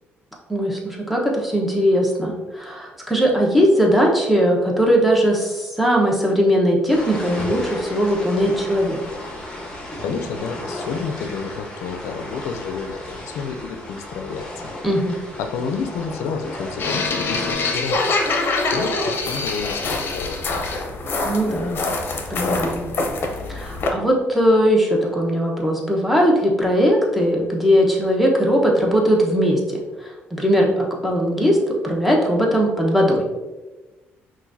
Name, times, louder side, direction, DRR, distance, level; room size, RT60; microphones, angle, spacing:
voice 1, 0.5-9.0 14.8-15.1 21.2-21.8 22.3-22.9 23.5-31.6 31.8-33.2, equal, ahead, -1 dB, 1.0 m, -19 dB
sound 1, 6.9-17.5, left 1 dB, 20° left, 1.1 m, -34 dB
voice 2, 10.0-14.7 15.4-18.0 18.3-20.6, left 5 dB, 85° left, 6 dB, 0.4 m, -30 dB
sound 2, 16.8-23.9, left 3 dB, 50° left, 0.7 m, -24 dB
5.6 x 2.5 x 2.7 m, 1.1 s
cardioid pair, 85°, 5 cm